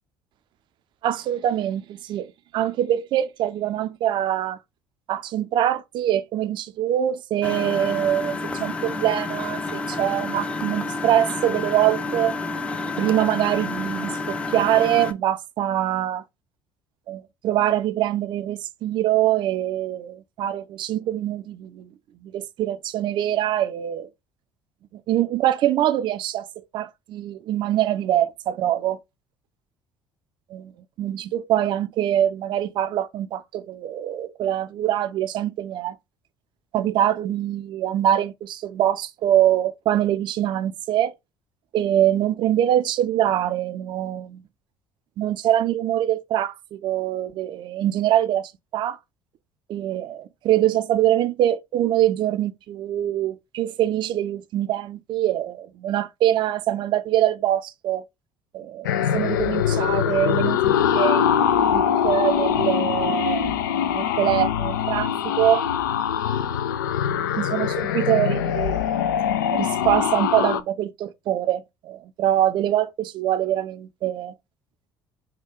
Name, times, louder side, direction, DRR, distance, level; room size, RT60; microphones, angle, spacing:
voice 1, 1.0-2.3 2.5-4.6 5.1-12.3 13.0-16.2 17.1-21.9 22.2-24.1 24.9-26.5 26.7-29.0 30.5-30.7 31.0-36.0 36.7-41.1 41.7-44.4 45.2-49.0 49.7-58.0 58.5-58.9 59.1-61.3 61.7-63.5 63.9-65.6 67.4-68.8 69.5-74.3, right 12 dB, 50° right, 0.5 m, -24 dB
Engine, 7.4-15.1, left 3 dB, 10° left, 0.6 m, -30 dB
sound 1, 58.8-70.6, left 9 dB, 75° left, 0.4 m, -23 dB
4.3 x 2.3 x 3.6 m
figure-of-eight pair, 55°, 11 cm